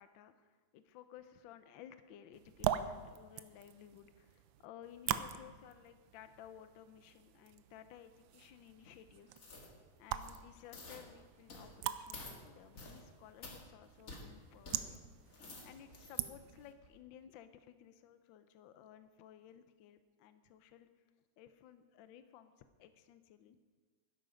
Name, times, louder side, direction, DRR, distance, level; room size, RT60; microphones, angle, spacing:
voice 1, 0.0-9.4 10.0-15.0 15.6-20.9 21.4-23.6, left 10 dB, 75° left, 11 dB, 1.3 m, -56 dB
sound 1, 2.3-16.7, right 11 dB, 80° right, 1.3 m, -44 dB
sound 2, 9.3-9.7 10.1-10.4 10.7-11.0 11.5-11.7 12.1-12.4 12.7-13.0 13.4-13.6 14.1-14.2 14.6-14.8 15.2-16.3 16.7-16.9, left 2 dB, 45° left, 2.1 m, -51 dB
12.5 x 10.5 x 5.0 m, 1.5 s
omnidirectional pair, 2.2 m